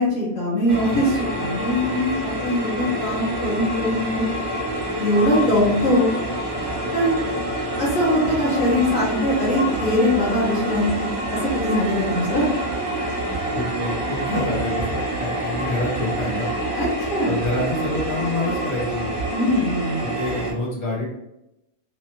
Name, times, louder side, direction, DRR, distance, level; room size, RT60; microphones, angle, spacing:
voice 1, 0.0-4.3 5.0-6.1 6.9-7.1 7.8-12.5 16.7-17.4 19.3-20.0, left 1 dB, 65° left, -6 dB, 1.4 m, -22 dB
sound 1, 0.7-20.5, right 1 dB, 30° right, 0.7 m, -27 dB
voice 2, 13.5-16.5 17.2-19.1 20.0-21.0, left 2 dB, 20° left, -5 dB, 1.1 m, -27 dB
3.4 x 2.5 x 2.9 m, 0.88 s
omnidirectional pair, 1.5 m